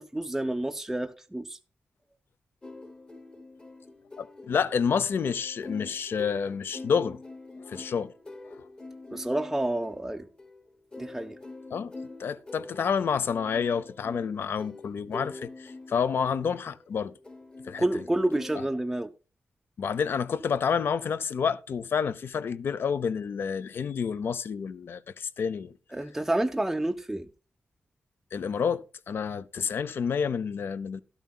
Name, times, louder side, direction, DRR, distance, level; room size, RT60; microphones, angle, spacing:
voice 1, 0.0-1.6 9.1-10.3 11.0-11.4 17.8-19.1 25.9-27.3, right 1 dB, 5° right, 0.5 m, -29 dB
sound 1, 2.6-18.6, left 2 dB, 25° left, 0.9 m, -45 dB
voice 2, 4.2-7.2 7.6-8.1 8.5-8.7 11.7-11.9 12.2-17.1 17.7-18.0 18.5-18.6 19.8-25.7 28.3-31.0, left 6 dB, 70° left, 0.5 m, -29 dB
13.0 x 12.0 x 2.3 m
wide cardioid pair, 140°, 4 cm